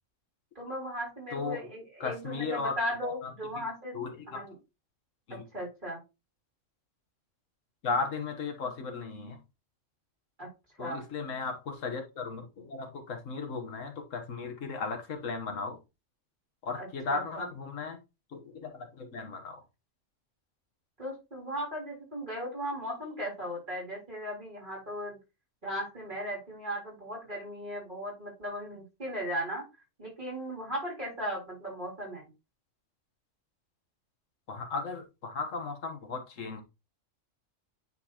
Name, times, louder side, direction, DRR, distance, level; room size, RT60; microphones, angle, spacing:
voice 1, 0.6-4.0 4.3-4.5 5.3-6.0 10.4-10.5 10.8-11.0 16.7-17.5 21.0-25.2 25.6-29.6 30.0-32.3, equal, 40° right, -3 dB, 3.9 m, -37 dB
voice 2, 2.0-2.7 3.0-3.1 3.9-4.4 5.3-5.5 7.8-9.4 10.8-15.8 16.6-18.0 18.3-19.6 34.5-36.6, left 4 dB, 85° left, 5 dB, 1.6 m, -36 dB
9.1 x 4.1 x 2.9 m, 0.26 s
omnidirectional pair, 1.3 m